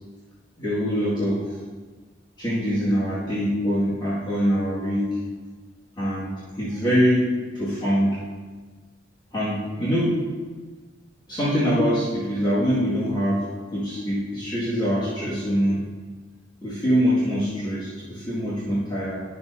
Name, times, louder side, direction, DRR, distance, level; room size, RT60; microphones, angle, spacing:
voice 1, 0.6-1.6 2.4-5.1 6.0-7.3 7.5-8.2 9.3-10.2 11.3-13.5 13.7-15.8 16.6-19.2, equal, 25° left, -11 dB, 2.0 m, -24 dB
12.0 x 6.8 x 2.7 m, 1.4 s
head